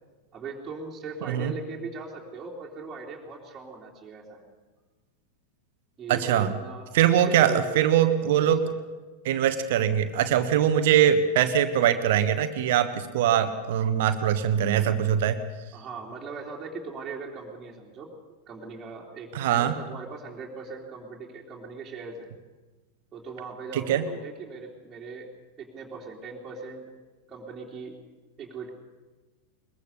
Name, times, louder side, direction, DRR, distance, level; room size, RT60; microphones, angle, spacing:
voice 1, 0.3-4.4 6.0-7.9 8.4-8.8 15.7-18.1 18.5-22.3 23.1-25.3 25.6-26.9 27.3-27.9 28.4-28.7, right 4 dB, 20° right, -5 dB, 3.4 m, -40 dB
voice 2, 6.1-6.5 6.9-8.7 9.2-15.4 19.3-19.7 23.7-24.0, right 9 dB, 55° right, 9 dB, 1.4 m, -22 dB
22.0 x 22.0 x 6.8 m, 1.2 s
figure-of-eight pair, 90°, 0 cm